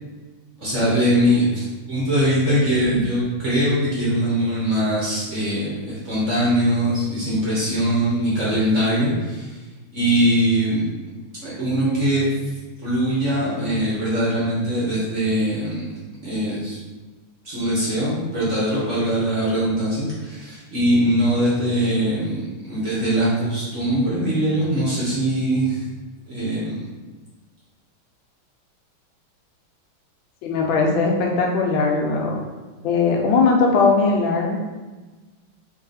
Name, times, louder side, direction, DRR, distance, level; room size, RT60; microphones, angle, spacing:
voice 1, 0.6-9.6 9.9-10.9 11.4-12.2 12.8-15.9 16.2-16.8 17.4-25.8 26.3-26.9, equal, 45° right, -8 dB, 1.2 m, -21 dB
voice 2, 30.4-32.4 32.8-34.6, left 4 dB, 80° left, 0 dB, 1.4 m, -19 dB
3.3 x 3.1 x 3.9 m, 1.3 s
omnidirectional pair, 2.2 m